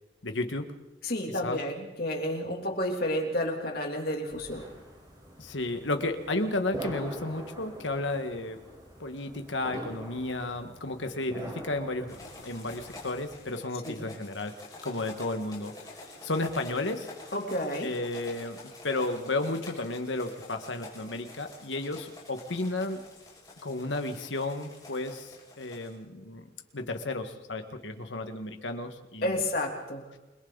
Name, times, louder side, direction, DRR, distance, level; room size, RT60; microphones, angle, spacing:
voice 1, 0.2-0.7 1.4-1.6 5.4-8.6 9.0-12.2 12.4-14.5 14.8-15.7 16.2-17.1 17.8-18.6 18.8-23.0 23.6-26.5 26.7-29.4, left 2 dB, 80° left, 6 dB, 1.8 m, -33 dB
voice 2, 1.0-4.7 13.8-14.1 17.3-17.9 29.2-30.0, left 1 dB, 55° left, 1 dB, 3.2 m, -31 dB
sound 1, 4.3-13.4, equal, 25° right, 4.9 m, -44 dB
sound 2, 12.1-25.9, left 2 dB, 20° left, 6.0 m, -48 dB
28.5 x 22.5 x 4.1 m, 1.1 s
head